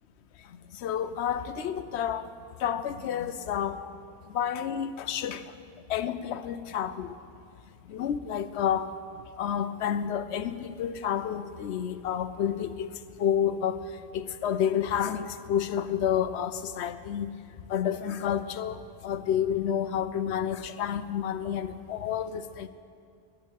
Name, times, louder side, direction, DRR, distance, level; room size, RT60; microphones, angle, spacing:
voice 1, 0.8-2.3 2.6-3.8 4.3-5.4 5.9-7.1 7.9-8.9 9.4-12.9 13.2-13.8 14.1-15.2 15.5-17.3 17.7-18.8 19.0-22.7, left 9 dB, 85° left, 12 dB, 0.9 m, -29 dB
11.0 x 10.0 x 8.4 m, 2.4 s
omnidirectional pair, 1.1 m